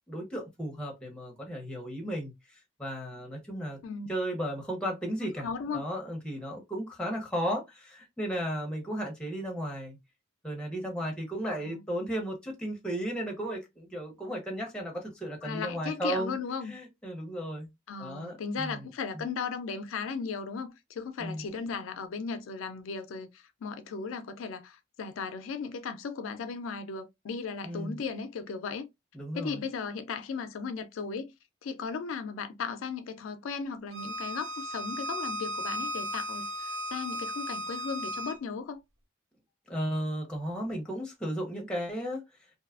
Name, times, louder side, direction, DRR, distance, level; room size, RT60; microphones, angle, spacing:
voice 1, 0.1-3.8 4.1-10.0 10.4-16.3 16.6-17.7 18.0-18.9 19.1-19.2 21.2-21.4 27.6-28.0 29.1-29.6 39.7-42.2, equal, 5° left, 0.8 m, -35 dB
voice 2, 5.2-5.8 11.6-11.8 15.4-16.7 17.9-28.9 29.3-31.3 31.6-38.8, left 5 dB, 75° left, 0.4 m, -36 dB
Bowed string instrument, 33.9-38.4, equal, 65° right, 0.7 m, -35 dB
2.6 x 2.3 x 2.4 m
head